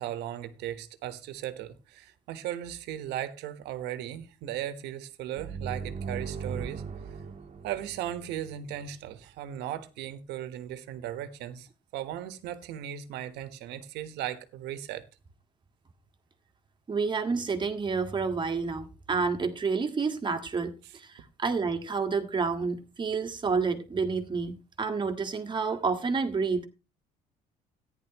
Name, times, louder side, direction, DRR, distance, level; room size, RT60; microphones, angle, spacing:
voice 1, 0.0-6.8 7.6-11.7 11.9-15.1 20.8-20.9, right 11 dB, 85° right, 1.3 m, -37 dB
sound 1, 5.4-8.9, right 5 dB, 45° right, 1.4 m, -38 dB
voice 2, 16.9-26.7, right 4 dB, 25° right, 1.7 m, -29 dB
14.5 x 10.0 x 3.0 m
cardioid pair, 110°, 17 cm